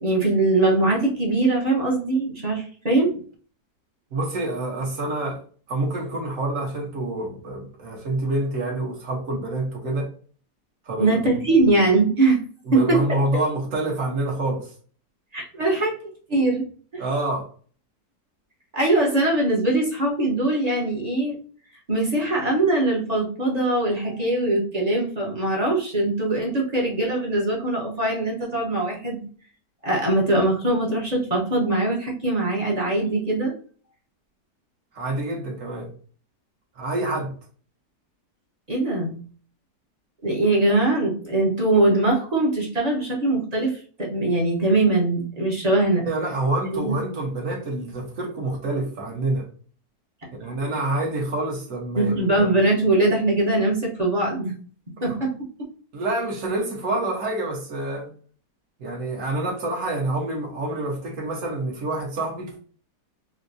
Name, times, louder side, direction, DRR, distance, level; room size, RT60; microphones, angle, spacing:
voice 1, 0.0-3.2 11.0-12.4 12.7-13.0 15.3-16.0 16.3-16.6 16.9-17.0 18.7-21.4 21.9-29.2 29.8-33.5 38.7-39.2 40.2-46.1 46.8-46.9 50.2-50.3 51.9-54.5 55.0-55.3, right 2 dB, 30° right, -3 dB, 0.8 m, -22 dB
voice 2, 4.1-5.4 5.7-10.1 10.8-11.5 12.6-14.7 17.0-17.4 34.9-35.9 36.7-37.3 46.0-49.5 50.3-52.1 55.0-55.2 55.9-58.1 58.8-62.5, right 2 dB, 55° right, -1 dB, 1.4 m, -27 dB
4.5 x 2.1 x 2.6 m, 0.43 s
omnidirectional pair, 1.7 m